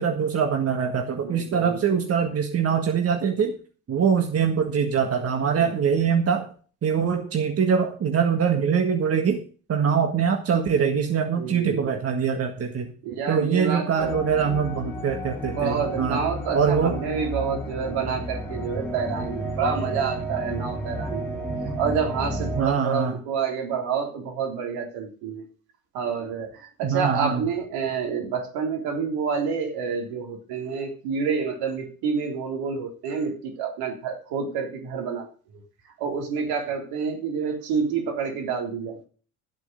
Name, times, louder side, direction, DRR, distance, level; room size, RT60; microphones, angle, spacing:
voice 1, 0.0-3.5 3.9-6.5 6.8-9.4 9.7-12.9 13.3-16.2 16.5-17.0 22.6-23.2 26.8-27.4, right 6 dB, 35° right, 5 dB, 1.7 m, -23 dB
voice 2, 1.2-2.0 5.5-5.7 11.4-11.9 13.0-14.1 15.5-21.3 21.8-25.4 25.9-35.3 35.5-35.6 36.0-39.0, right 6 dB, 60° right, 3 dB, 3.6 m, -28 dB
sound 1, 14.0-22.6, right 1 dB, 5° left, 2.8 m, -32 dB
12.5 x 8.2 x 5.2 m, 0.40 s
figure-of-eight pair, 60°, 42 cm